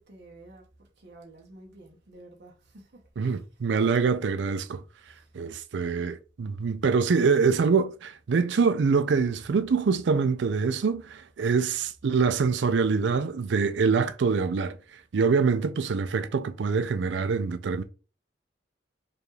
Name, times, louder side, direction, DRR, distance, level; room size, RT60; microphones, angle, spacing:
voice 1, 0.1-3.4 5.1-5.3, right 2 dB, 70° right, 0.8 m, -51 dB
voice 2, 3.2-4.8 5.3-14.8 15.1-17.8, right 5 dB, 85° right, 0.4 m, -25 dB
5.0 x 2.4 x 3.2 m
head